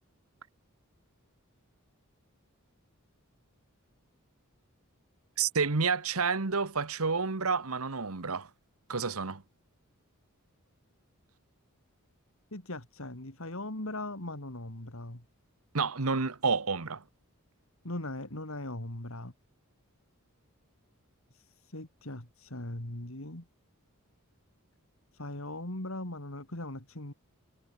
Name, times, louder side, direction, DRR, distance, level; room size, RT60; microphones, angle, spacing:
voice 1, 5.4-8.5 8.9-9.4 15.7-17.0, right 4 dB, 75° right, 1.4 m, -29 dB
voice 2, 12.5-15.2 17.8-19.3 21.3-23.4 25.1-27.1, left 1 dB, 65° left, 3.3 m, -39 dB
head